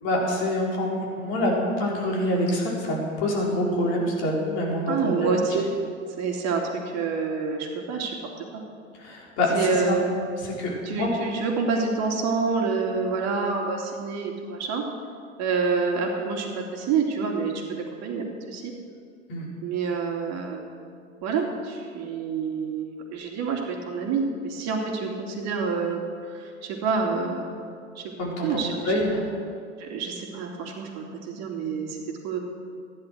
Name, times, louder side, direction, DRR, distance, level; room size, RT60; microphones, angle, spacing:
voice 1, 0.0-5.3 9.0-10.0 10.4-11.1 19.3-19.5 28.2-29.2, left 1 dB, 55° left, -3 dB, 4.6 m, -26 dB
voice 2, 4.9-5.7 6.2-8.6 9.5-10.1 10.8-14.8 15.4-17.5 18.0-18.7 19.6-20.6 21.2-26.0 26.3-27.4 27.9-28.1 28.4-29.0 29.8-32.4, right 5 dB, 40° right, 1 dB, 2.7 m, -27 dB
14.5 x 10.5 x 6.4 m, 2.3 s
figure-of-eight pair, 90°, 39 cm